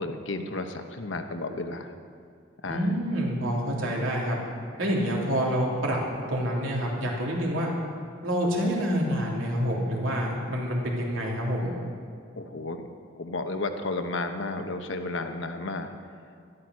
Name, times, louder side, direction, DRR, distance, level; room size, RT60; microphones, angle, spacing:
voice 1, 0.0-1.9 2.6-2.9 12.3-12.8 13.2-15.9, left 2 dB, 70° left, 6 dB, 1.1 m, -32 dB
voice 2, 2.6-4.4 4.8-7.7 8.2-11.7, equal, 85° right, -3 dB, 3.1 m, -27 dB
12.5 x 12.5 x 6.3 m, 2.2 s
head